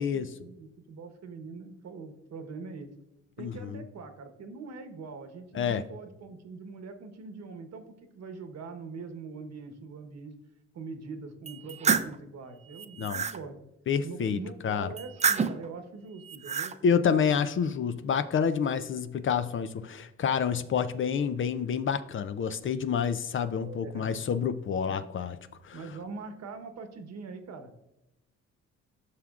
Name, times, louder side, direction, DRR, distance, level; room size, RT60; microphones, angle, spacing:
voice 1, 0.0-2.9 3.4-7.8 8.1-10.3 10.7-13.6 14.0-16.7 23.6-24.1 24.9-25.1 25.7-27.8, right 4 dB, 60° right, 7 dB, 1.1 m, -43 dB
voice 2, 3.4-3.8 5.5-5.8 13.0-13.2 13.9-14.4 14.6-14.9 16.8-25.4 25.6-25.8, left 7 dB, 40° left, 12 dB, 0.4 m, -28 dB
sound 1, 11.5-12.2 12.7-13.4 15.0-15.7 16.2-16.7, right 6 dB, 25° right, 0.4 m, -28 dB
12.5 x 6.0 x 2.4 m, 0.90 s
cardioid pair, 90°, 30 cm